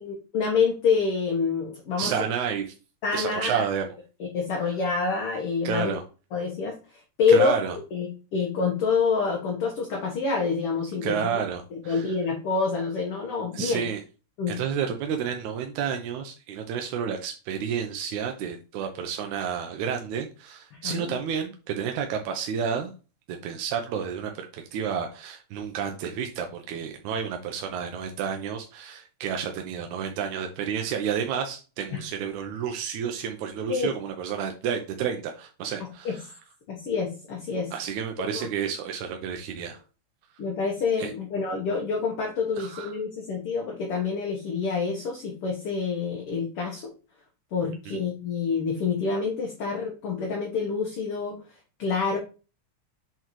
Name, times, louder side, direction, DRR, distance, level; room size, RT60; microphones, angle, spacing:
voice 1, 0.0-2.1 3.0-3.6 4.3-5.9 6.3-6.8 7.2-7.6 7.9-8.1 8.3-11.2 11.7-13.9 14.4-14.5 20.8-21.1 31.9-32.0 33.7-33.9 36.1-36.2 36.7-37.7 38.3-38.5 40.4-46.9 47.5-51.4 51.8-52.2, left 5 dB, 60° left, 0 dB, 2.0 m, -27 dB
voice 2, 2.0-2.7 3.1-3.9 5.6-6.0 7.3-7.8 11.0-12.2 13.5-14.0 14.5-22.9 23.3-36.3 37.7-39.8 41.0-41.1 42.6-42.9 47.9-48.0, right 7 dB, 90° right, 4 dB, 2.2 m, -30 dB
8.0 x 4.4 x 3.0 m, 0.34 s
omnidirectional pair, 3.3 m